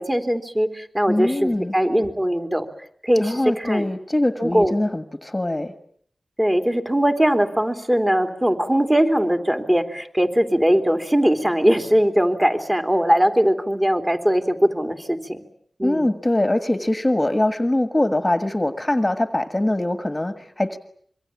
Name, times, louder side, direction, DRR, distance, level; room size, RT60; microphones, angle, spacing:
voice 1, 0.0-2.7 3.0-3.8 4.4-4.7 6.4-15.4 15.8-16.1, equal, 15° right, 7 dB, 3.3 m, -20 dB
voice 2, 1.1-1.7 3.2-5.7 15.8-20.8, left 1 dB, 20° left, 10 dB, 1.6 m, -22 dB
26.0 x 24.0 x 8.6 m, 0.62 s
wide cardioid pair, 70°, 0 cm